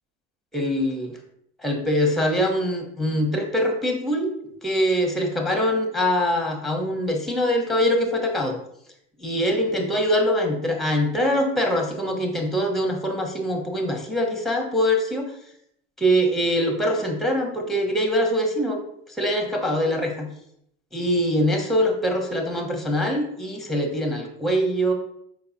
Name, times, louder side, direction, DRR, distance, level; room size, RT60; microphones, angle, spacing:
voice 1, 0.5-1.2 1.6-4.3 4.6-8.5 9.2-15.3 16.0-18.8 19.2-20.3 20.9-24.9, equal, ahead, 2 dB, 1.1 m, -23 dB
4.6 x 3.9 x 2.8 m, 0.73 s
supercardioid pair, 85°, 30 cm